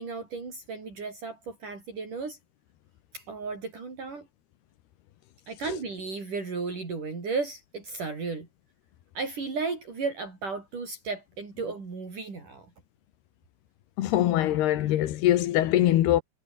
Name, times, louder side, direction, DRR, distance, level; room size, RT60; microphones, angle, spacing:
voice 1, 0.0-2.4 3.1-4.3 5.5-8.5 9.1-12.7, right 4 dB, 55° right, 7.8 m, -34 dB
voice 2, 14.0-16.2, left 13 dB, 85° left, 3.5 m, -23 dB
omnidirectional pair, 4.5 m